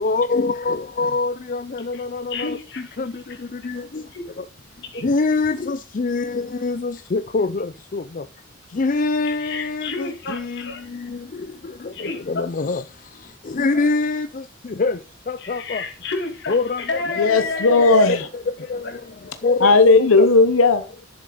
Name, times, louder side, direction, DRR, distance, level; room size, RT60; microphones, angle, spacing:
voice 1, 0.0-1.6 2.1-2.2 5.0-6.3 6.6-6.8 7.1-7.5 8.8-9.9 12.6-12.8 13.6-14.3 14.8-14.9 15.5-15.8 16.5-16.8 19.4-19.7 20.2-20.3, left 3 dB, 40° left, 0.4 m, -22 dB
voice 2, 2.3-3.0 4.1-4.2 4.8-5.1 9.2-10.9 11.9-12.2 15.4-18.2, left 3 dB, 55° left, 2.7 m, -29 dB
voice 3, 17.2-18.3 19.6-20.8, left 3 dB, 85° left, 0.9 m, -15 dB
11.5 x 7.3 x 4.9 m
head